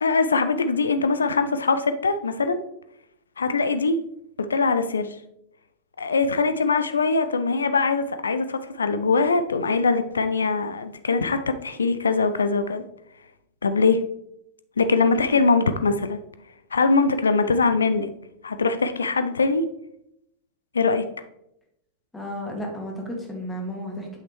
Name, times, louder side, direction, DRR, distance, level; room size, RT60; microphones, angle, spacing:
voice 1, 0.0-2.6 3.4-4.0 4.5-5.1 6.0-12.8 13.6-14.0 14.8-16.2 16.7-18.1 18.4-19.6 20.7-21.0, left 4 dB, 75° left, 9 dB, 0.4 m, -22 dB
voice 2, 22.1-24.2, equal, 10° left, 0 dB, 2.0 m, -33 dB
7.8 x 5.9 x 3.1 m, 0.79 s
figure-of-eight pair, 90°, 0 cm